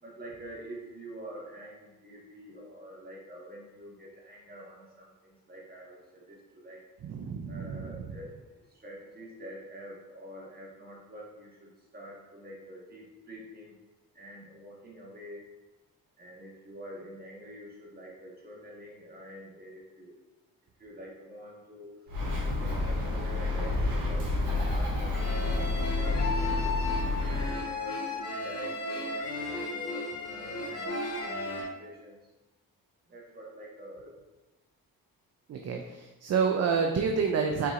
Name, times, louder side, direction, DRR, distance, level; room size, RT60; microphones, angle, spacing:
voice 1, 0.0-6.8 7.5-8.3 8.8-13.7 14.1-15.4 16.2-20.1 20.8-21.9 22.6-24.3 24.7-26.2 27.3-32.2 33.1-34.1 35.7-35.9, equal, 25° right, -3 dB, 1.4 m, -46 dB
voice 2, 7.0-8.0 35.5-37.7, right 5 dB, 45° right, 3 dB, 0.5 m, -29 dB
Bird, 22.1-27.5, left 3 dB, 75° right, 1.3 m, -29 dB
sound 1, 25.0-31.6, left 2 dB, 45° left, 1.3 m, -35 dB
4.6 x 3.9 x 2.4 m, 1.1 s
cardioid pair, 75°, 35 cm